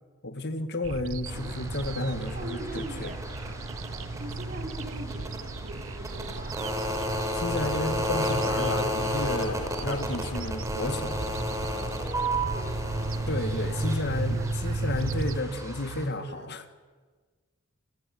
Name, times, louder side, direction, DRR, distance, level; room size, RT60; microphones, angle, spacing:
voice 1, 0.2-3.1 7.3-11.2 13.3-16.6, left 2 dB, 50° left, 10 dB, 2.1 m, -32 dB
sound 1, 0.8-15.4, right 3 dB, 65° right, 0.9 m, -35 dB
sound 2, 1.3-16.0, equal, 15° right, 4.6 m, -33 dB
voice 2, 2.2-3.2 4.2-7.2 12.2-13.1 13.7-14.0 14.2-15.2 16.2-16.5, right 1 dB, 40° right, 2 dB, 5.6 m, -43 dB
29.0 x 20.5 x 9.5 m, 1.4 s
head